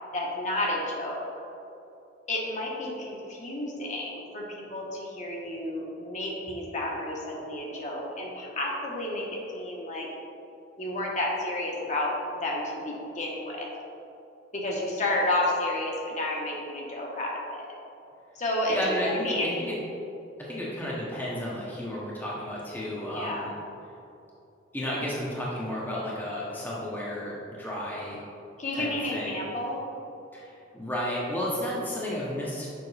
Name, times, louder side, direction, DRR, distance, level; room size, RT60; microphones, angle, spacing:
voice 1, 0.1-1.2 2.3-10.1 10.8-13.7 14.5-17.7 18.3-19.5 22.9-23.5 28.6-29.8, left 1 dB, 40° left, -3 dB, 1.0 m, -31 dB
voice 2, 18.7-19.8 20.5-23.5 24.7-28.2 28.7-29.4 30.3-32.7, left 1 dB, 10° left, -6 dB, 0.8 m, -32 dB
7.0 x 5.1 x 3.3 m, 2.8 s
head